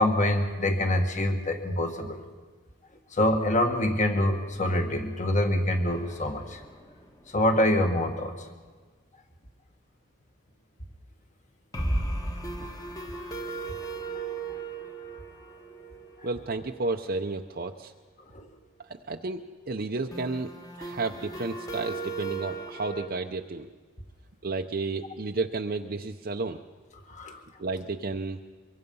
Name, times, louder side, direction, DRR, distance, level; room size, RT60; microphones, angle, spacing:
voice 1, 0.0-2.2 3.1-6.6 7.3-8.5 12.6-12.7 18.3-18.5 27.1-27.4, left 1 dB, 35° left, 5 dB, 1.7 m, -25 dB
sound 1, 5.9-7.1 7.4-7.5 7.8-7.9 11.7-17.4 20.1-23.1, right 2 dB, 15° left, 1.4 m, -36 dB
voice 2, 16.2-17.9 19.1-20.5 20.8-23.7 24.4-26.6 27.6-28.4, right 3 dB, 45° right, 3 dB, 0.7 m, -32 dB
24.0 x 23.0 x 5.5 m, 1.4 s
head